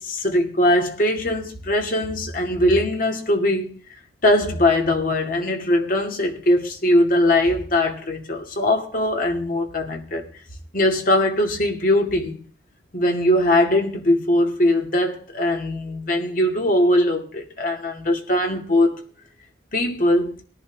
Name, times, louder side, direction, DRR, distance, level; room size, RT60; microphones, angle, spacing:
voice 1, 0.0-3.7 4.2-10.2 10.7-12.4 12.9-19.0 19.7-20.3, left 1 dB, 50° left, 2.4 m, -20 dB
20.0 x 10.5 x 3.5 m
head